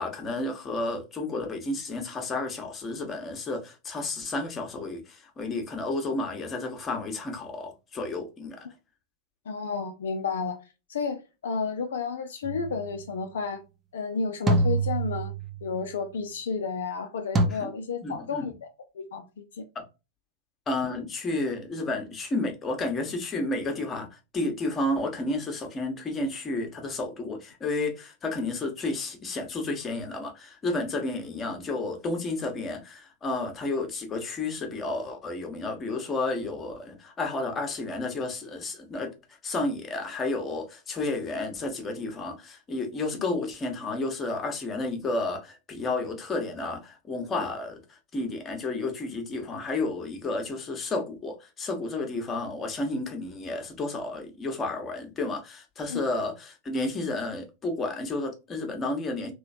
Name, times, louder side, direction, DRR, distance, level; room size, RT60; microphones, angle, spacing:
voice 1, 0.0-8.7 17.5-17.7 18.0-18.5 19.7-19.8 20.7-39.1 39.4-59.3, left 2 dB, 20° left, 1.0 m, -31 dB
voice 2, 9.5-10.6 10.9-13.6 13.9-15.3 15.6-18.7 18.9-19.6 55.9-56.0, left 5 dB, 65° left, 0.5 m, -31 dB
sound 1, 12.4-12.8 14.5-15.7 17.3-17.5, right 2 dB, 20° right, 0.6 m, -25 dB
3.1 x 3.0 x 2.6 m
figure-of-eight pair, 90°, 0 cm